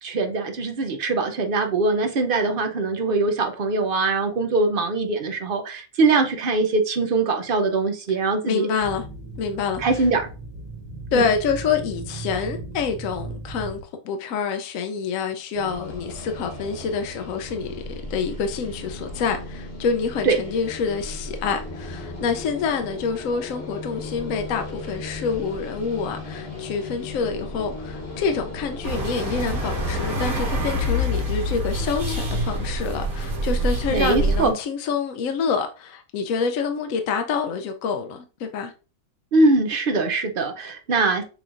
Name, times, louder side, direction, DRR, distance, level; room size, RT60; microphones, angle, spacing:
voice 1, 0.0-8.7 9.8-10.3 11.1-11.2 20.2-20.4 33.9-34.5 39.3-41.2, right 3 dB, 55° right, 0.6 m, -22 dB
voice 2, 8.4-9.0 9.4-10.1 11.1-13.8 14.0-17.8 18.1-38.7, left 5 dB, 70° left, 1.0 m, -27 dB
sound 1, 8.8-13.8, right 2 dB, 25° right, 1.8 m, -36 dB
sound 2, 15.5-30.9, left 2 dB, 45° left, 1.3 m, -36 dB
sound 3, 28.8-34.5, equal, 80° right, 2.0 m, -25 dB
6.8 x 3.1 x 2.4 m
omnidirectional pair, 1.5 m